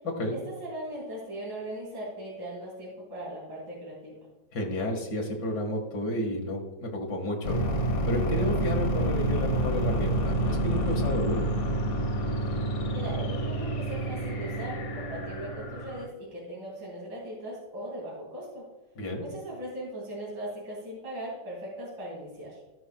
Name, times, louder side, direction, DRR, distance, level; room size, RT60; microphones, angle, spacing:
voice 1, 0.3-4.1 12.9-18.6 19.2-22.6, right 1 dB, 60° right, -6 dB, 3.3 m, -39 dB
voice 2, 4.5-7.6 8.0-11.5 19.0-19.3, left 1 dB, 60° left, 0 dB, 2.2 m, -31 dB
sound 1, 7.4-16.1, right 1 dB, 45° left, 1.2 m, -28 dB
17.5 x 5.9 x 2.2 m, 1.2 s
omnidirectional pair, 2.1 m